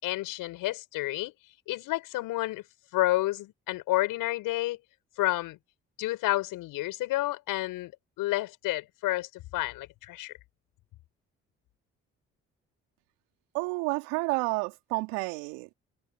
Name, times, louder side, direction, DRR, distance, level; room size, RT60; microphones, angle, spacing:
voice 1, 0.0-1.3 1.7-2.6 2.9-4.8 5.2-5.6 6.0-10.3, left 17 dB, 70° left, 6.3 m, -30 dB
voice 2, 13.5-15.7, right 28 dB, 80° right, 3.1 m, -30 dB
hypercardioid pair, 45°, 34 cm